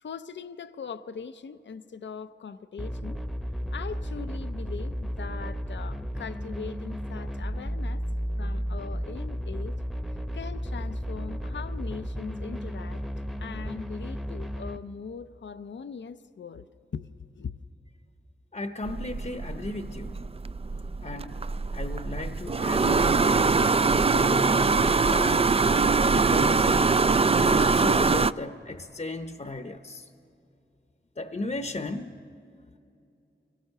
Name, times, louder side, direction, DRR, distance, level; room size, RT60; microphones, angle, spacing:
voice 1, 0.0-3.2 3.7-8.0 8.4-9.8 10.3-13.0 13.4-16.7 16.9-17.5, left 6 dB, 70° left, 0.5 m, -40 dB
sound 1, 2.8-14.8, equal, ahead, 0.9 m, -33 dB
voice 2, 18.5-20.1 21.0-21.4 21.7-25.5 26.1-27.0 27.3-30.1 31.2-32.2, left 2 dB, 40° left, 0.8 m, -35 dB
sound 2, 18.8-28.3, right 4 dB, 30° right, 0.4 m, -23 dB
24.0 x 17.0 x 6.6 m
cardioid pair, 45°, 20 cm